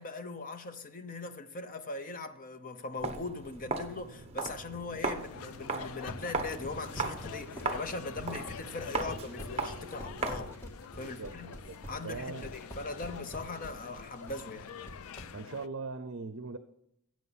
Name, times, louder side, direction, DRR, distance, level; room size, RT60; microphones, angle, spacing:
voice 1, 0.0-10.5 11.0-11.5 11.9-14.7, left 3 dB, 40° left, 0.8 m, -40 dB
Walk footsteps, 3.0-10.6, right 3 dB, 30° right, 1.0 m, -38 dB
sound 1, 5.1-15.7, left 7 dB, 70° left, 0.4 m, -47 dB
sound 2, 5.8-15.3, equal, 10° left, 1.8 m, -45 dB
voice 2, 11.0-11.8 12.0-12.5 15.3-16.6, right 4 dB, 60° right, 0.6 m, -40 dB
16.5 x 7.8 x 4.2 m
head